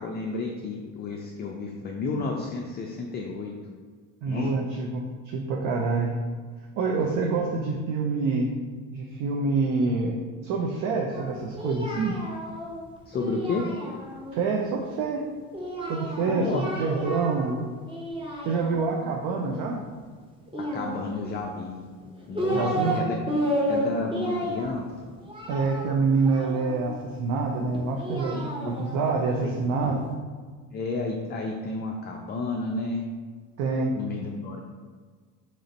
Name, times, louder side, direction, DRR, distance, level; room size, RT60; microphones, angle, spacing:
voice 1, 0.0-3.5 4.3-4.5 7.0-7.1 13.1-13.7 16.3-16.6 20.7-21.8 22.3-23.4 23.7-24.9 28.3-28.8 29.4-29.5 30.7-33.0 34.0-34.6, left 3 dB, 30° left, 0 dB, 0.3 m, -32 dB
voice 2, 4.2-6.2 6.8-8.5 8.9-10.2 10.4-12.2 14.3-15.2 15.9-17.6 18.4-19.8 22.5-23.0 25.5-30.0 33.6-34.0, right 4 dB, 60° right, 0 dB, 0.5 m, -26 dB
Singing, 11.1-14.4 15.5-17.6 17.9-19.1 20.5-21.4 22.0-23.0 23.3-26.9 27.7-29.9, equal, 15° right, 0.7 m, -32 dB
3.0 x 2.5 x 4.0 m, 1.5 s
supercardioid pair, 85°, 37 cm